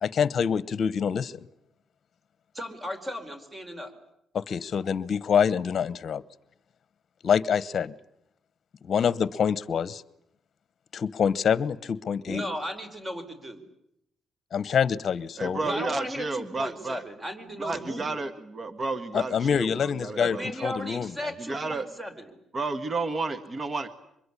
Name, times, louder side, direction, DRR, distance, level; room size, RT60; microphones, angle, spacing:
voice 1, 0.0-1.3 4.3-6.2 7.2-7.9 8.8-10.0 10.9-12.4 14.5-15.6 19.1-21.3, left 7 dB, 50° left, 19 dB, 1.0 m, -26 dB
voice 2, 2.5-3.9 12.3-13.6 15.6-18.2 20.2-22.3, equal, 20° right, 9 dB, 4.5 m, -35 dB
voice 3, 15.4-17.0 17.6-20.7 21.4-21.9 22.5-23.9, right 3 dB, 35° right, 12 dB, 1.6 m, -32 dB
24.5 x 22.0 x 9.9 m, 0.76 s
cardioid pair, 90°, 0 cm